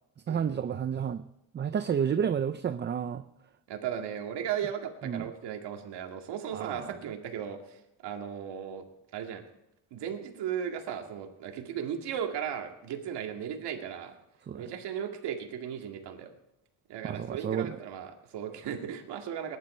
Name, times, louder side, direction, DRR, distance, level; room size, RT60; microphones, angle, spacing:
voice 1, 0.3-1.2 1.5-3.2 5.0-5.3 6.5-6.9 14.5-14.7 17.0-17.8, right 8 dB, 30° right, 11 dB, 0.5 m, -30 dB
voice 2, 3.7-8.9 9.1-9.4 9.9-14.1 14.5-16.3 16.9-19.6, right 8 dB, 85° right, 3 dB, 2.2 m, -36 dB
20.5 x 11.0 x 4.4 m, 0.86 s
cardioid pair, 135°, 40 cm